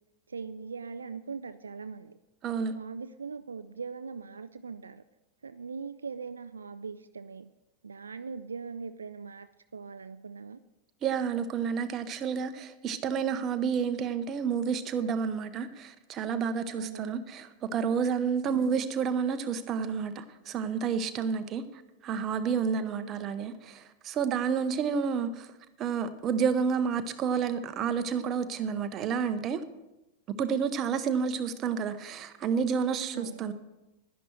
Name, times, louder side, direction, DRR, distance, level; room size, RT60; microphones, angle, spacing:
voice 1, 0.3-2.2 2.8-5.0 5.4-7.5 7.8-10.6 16.7-17.2 18.5-18.7 22.7-23.1 33.1-33.4, right 5 dB, 75° right, 0.3 m, -41 dB
voice 2, 2.4-2.7 11.0-21.6 22.0-25.5 25.8-29.6 30.4-33.5, right 6 dB, 30° right, 0.8 m, -30 dB
11.0 x 10.5 x 4.4 m
figure-of-eight pair, 90°, 0 cm